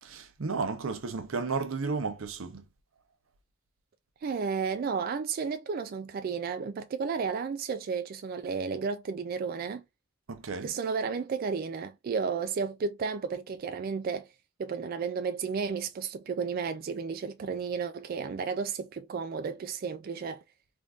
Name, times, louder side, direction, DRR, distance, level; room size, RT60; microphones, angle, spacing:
voice 1, 0.0-2.6 10.3-10.7, right 4 dB, 90° right, 0.7 m, -33 dB
voice 2, 4.2-9.8 10.6-14.3 14.6-20.4, right 5 dB, 45° right, 0.3 m, -33 dB
3.5 x 2.5 x 2.4 m
head